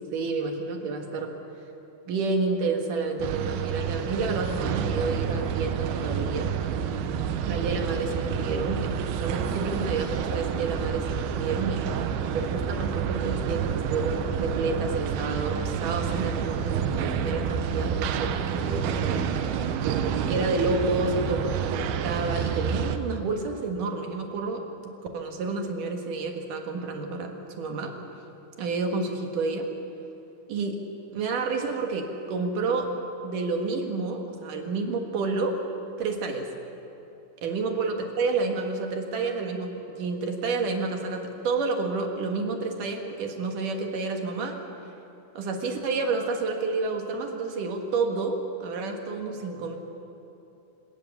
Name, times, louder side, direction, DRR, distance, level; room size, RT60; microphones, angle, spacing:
voice 1, 0.1-1.3 2.1-6.5 7.4-11.8 12.3-19.3 20.3-24.6 25.1-28.0 28.6-29.7 30.5-30.8 31.1-32.9 33.2-35.6 36.0-36.5 37.4-44.6 45.3-49.8, right 3 dB, 65° right, 3 dB, 3.0 m, -29 dB
sound 1, 3.2-23.0, right 7 dB, 90° right, 2.9 m, -29 dB
26.5 x 18.5 x 7.2 m, 2.9 s
omnidirectional pair, 4.4 m